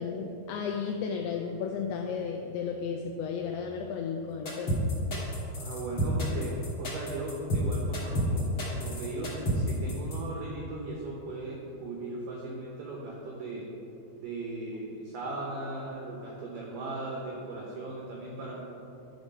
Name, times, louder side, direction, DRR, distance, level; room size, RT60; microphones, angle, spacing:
voice 1, 0.0-4.8, left 6 dB, 85° left, 3 dB, 2.3 m, -33 dB
sound 1, 4.4-10.2, equal, 60° left, 1.3 m, -30 dB
voice 2, 5.6-13.6 14.2-18.6, right 2 dB, 85° right, -2 dB, 1.8 m, -38 dB
11.5 x 4.6 x 5.3 m, 3.0 s
omnidirectional pair, 5.1 m